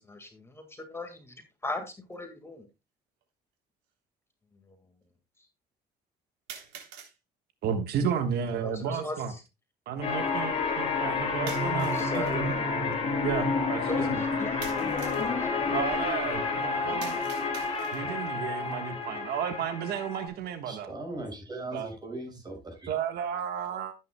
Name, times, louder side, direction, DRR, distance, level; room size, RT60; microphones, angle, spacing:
voice 1, 0.0-1.3 1.6-1.8 2.1-2.6 8.0-8.1 8.6-9.4 11.9-13.1 13.9-15.8 16.1-16.2 16.4-16.9, left 2 dB, 15° left, 1.8 m, -39 dB
sound 1, 2.1-2.2 3.2-3.3 6.5-7.2 11.5-12.4 14.6-15.3 17.0-18.2, right 8 dB, 90° right, 3.3 m, -45 dB
voice 2, 7.6-9.3 9.9-12.6 13.2-14.2 15.7-17.3 17.9-20.9 21.7-21.9 22.9-23.9, right 7 dB, 70° right, 1.3 m, -33 dB
sound 2, 10.0-20.3, left 4 dB, 35° left, 4.0 m, -29 dB
voice 3, 20.7-22.9, right 2 dB, 25° right, 6.0 m, -39 dB
13.5 x 9.1 x 2.2 m
cardioid pair, 110°, 17 cm